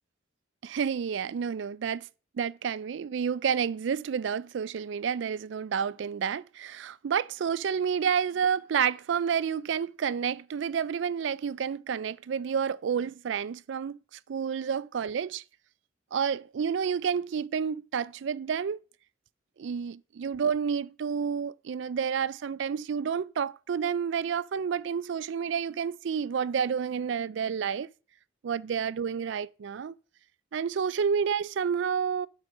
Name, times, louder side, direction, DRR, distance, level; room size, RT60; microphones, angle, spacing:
voice 1, 0.6-2.1 2.3-14.0 14.3-15.4 16.1-18.8 19.6-27.9 28.4-29.9 30.5-32.3, right 7 dB, 70° right, 0.4 m, -30 dB
6.6 x 5.3 x 6.0 m
head